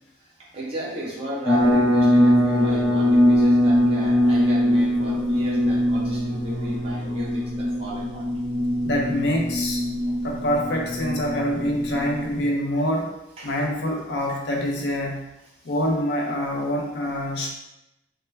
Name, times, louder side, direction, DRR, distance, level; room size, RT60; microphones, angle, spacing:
voice 1, 0.5-8.3 10.0-10.2 13.4-13.6, right 1 dB, 35° right, -6 dB, 0.7 m, -34 dB
sound 1, 1.5-12.4, left 1 dB, 5° left, 0.4 m, -21 dB
voice 2, 8.8-9.8 10.2-13.1 13.4-15.2 15.6-17.5, equal, 70° left, -1 dB, 0.5 m, -25 dB
2.2 x 2.1 x 3.1 m, 0.90 s
head